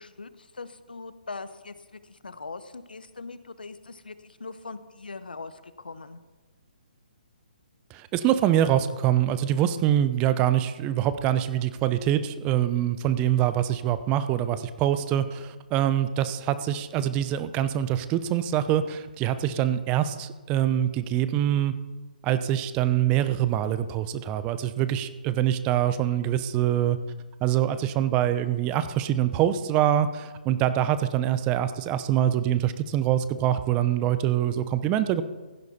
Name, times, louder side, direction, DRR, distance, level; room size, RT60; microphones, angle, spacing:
voice 1, 0.0-6.2, left 3 dB, 85° left, 13 dB, 1.0 m, -41 dB
voice 2, 7.9-21.8 22.2-27.0 27.4-35.2, right 11 dB, 25° right, 12 dB, 0.7 m, -24 dB
16.0 x 10.5 x 4.3 m, 1.3 s
hypercardioid pair, 140°, 5 cm